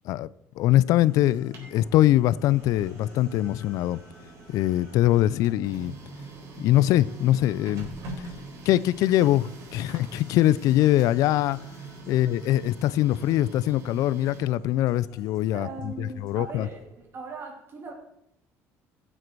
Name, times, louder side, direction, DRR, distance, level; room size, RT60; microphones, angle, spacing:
voice 1, 0.6-4.0 4.5-5.9 6.6-7.9 8.7-11.6 12.1-15.7 16.0-16.7, left 14 dB, 70° left, 0.4 m, -22 dB
sound 1, 0.8-7.9 8.3-16.8, left 1 dB, 10° left, 4.0 m, -54 dB
Printer, 1.2-17.0, right 3 dB, 60° right, 4.2 m, -44 dB
voice 2, 15.5-17.9, right 4 dB, 40° right, 3.0 m, -39 dB
15.5 x 7.7 x 4.6 m
cardioid pair, 125°, 6 cm